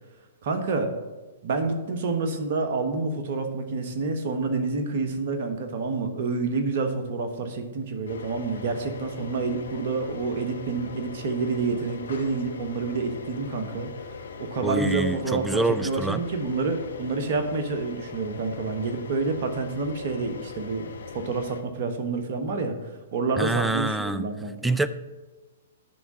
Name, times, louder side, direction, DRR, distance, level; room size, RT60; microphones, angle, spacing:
voice 1, 0.4-0.9 1.4-13.9 14.4-20.9 21.1-22.7 23.1-24.7, right 3 dB, 55° right, 6 dB, 1.2 m, -28 dB
sound 1, 8.1-21.6, left 5 dB, 70° left, 0.8 m, -41 dB
voice 2, 14.6-16.3 23.4-24.3 24.6-24.9, right 2 dB, 5° right, 13 dB, 0.4 m, -26 dB
10.5 x 3.6 x 7.3 m, 1.2 s
figure-of-eight pair, 115°, 0 cm